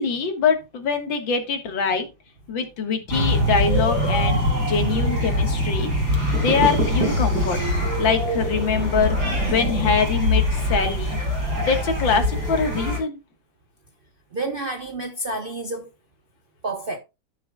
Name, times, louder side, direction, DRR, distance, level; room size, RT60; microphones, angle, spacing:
voice 1, 0.0-2.1 2.5-5.9 6.3-7.6 8.0-9.2 9.4-11.2 11.6-13.2, left 5 dB, 80° left, 2.3 m, -23 dB
sound 1, 3.1-13.0, left 1 dB, 90° right, 5.6 m, -23 dB
voice 2, 14.3-15.9 16.6-17.0, right 2 dB, 45° right, 0.7 m, -29 dB
13.5 x 6.5 x 2.3 m
omnidirectional pair, 2.1 m